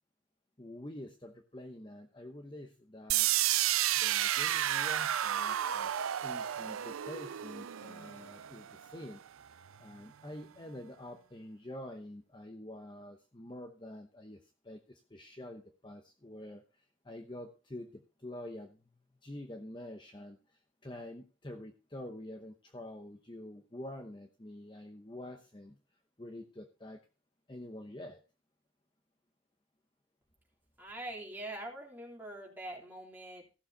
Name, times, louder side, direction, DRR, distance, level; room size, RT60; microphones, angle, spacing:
voice 1, 0.6-3.3 3.9-5.9 6.2-9.2 9.8-18.8 19.2-25.8 26.2-27.0 27.5-28.2, left 1 dB, 25° left, 5 dB, 0.9 m, -47 dB
sound 1, 3.1-9.0, right 12 dB, 90° right, 0.5 m, -31 dB
voice 2, 30.8-33.5, right 1 dB, 10° right, -2 dB, 3.5 m, -44 dB
15.5 x 7.1 x 4.1 m, 0.33 s
head